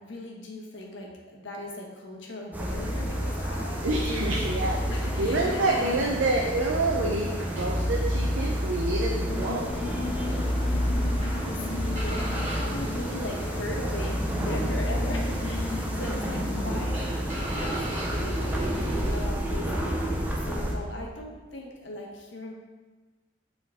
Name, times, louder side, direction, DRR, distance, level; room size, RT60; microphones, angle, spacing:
voice 1, 0.0-6.0 11.3-19.7 20.2-22.5, left 1 dB, 70° left, 0 dB, 1.1 m, -39 dB
sound 1, 2.5-20.7, equal, 10° right, 0.7 m, -29 dB
sound 2, 2.9-19.2, right 1 dB, 35° right, 1.6 m, -43 dB
voice 2, 3.8-9.7, right 2 dB, 90° right, -1 dB, 0.6 m, -28 dB
sound 3, 9.3-16.9, left 4 dB, 30° left, 0.4 m, -37 dB
7.3 x 3.8 x 3.6 m, 1.3 s
head